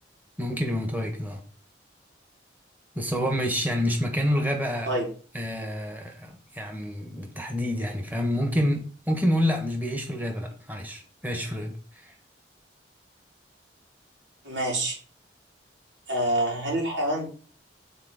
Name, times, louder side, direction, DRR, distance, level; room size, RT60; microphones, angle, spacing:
voice 1, 0.4-1.4 2.9-4.9 5.3-11.7, equal, 10° right, 1.5 m, -28 dB
voice 2, 14.4-15.0 16.1-17.3, right 1 dB, 85° right, 3.7 m, -27 dB
6.7 x 4.4 x 6.6 m
head